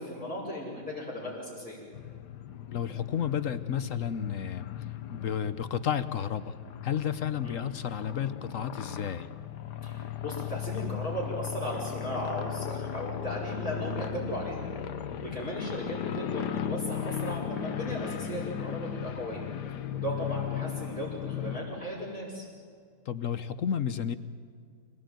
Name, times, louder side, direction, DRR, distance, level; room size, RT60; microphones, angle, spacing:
voice 1, 0.0-1.8 7.4-7.6 9.8-14.7 15.2-19.5 19.9-22.5, equal, 5° left, -8 dB, 5.7 m, -36 dB
sound 1, 1.9-21.6, left 9 dB, 75° left, 1.6 m, -37 dB
voice 2, 2.7-4.7 5.1-6.6 6.8-9.3 23.1-24.2, left 8 dB, 55° left, 12 dB, 1.1 m, -32 dB
26.5 x 18.5 x 9.2 m, 2.1 s
omnidirectional pair, 1.8 m